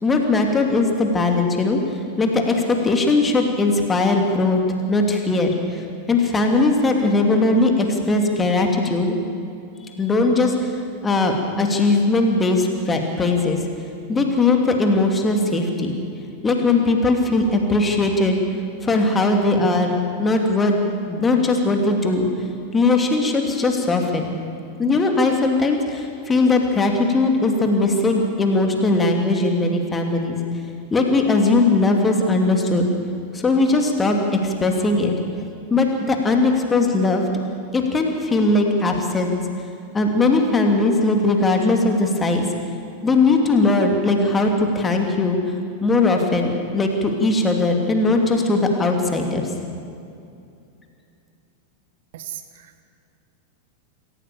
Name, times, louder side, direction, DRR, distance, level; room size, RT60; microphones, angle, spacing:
voice 1, 0.0-4.6 4.9-9.2 9.9-10.7 11.0-13.6 14.1-16.0 16.4-18.4 18.8-20.7 21.1-22.3 22.7-24.3 24.8-30.4 30.9-32.9 33.3-35.1 35.7-37.2 37.7-39.4 39.9-42.4 43.0-45.4 45.8-49.5, left 2 dB, 15° left, 3 dB, 3.0 m, -19 dB
voice 2, 52.1-52.8, right 12 dB, 55° right, 9 dB, 1.3 m, -37 dB
27.5 x 15.0 x 7.1 m, 2.5 s
figure-of-eight pair, 90°, 0 cm